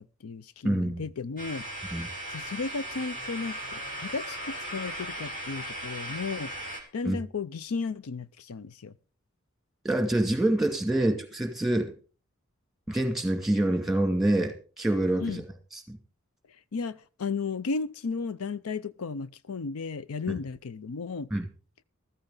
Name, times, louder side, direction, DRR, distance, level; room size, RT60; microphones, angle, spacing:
voice 1, 0.0-1.7 2.3-6.5 6.9-8.9 15.2-15.4 16.7-21.3, left 4 dB, 85° left, 0.6 m, -34 dB
voice 2, 0.6-1.0 1.9-2.1 7.0-7.2 9.8-11.9 12.9-15.4 15.7-16.0 20.3-20.4 21.3-21.5, right 1 dB, ahead, 2.3 m, -26 dB
sound 1, 1.4-6.8, right 1 dB, 40° left, 4.3 m, -37 dB
14.5 x 14.0 x 3.9 m
head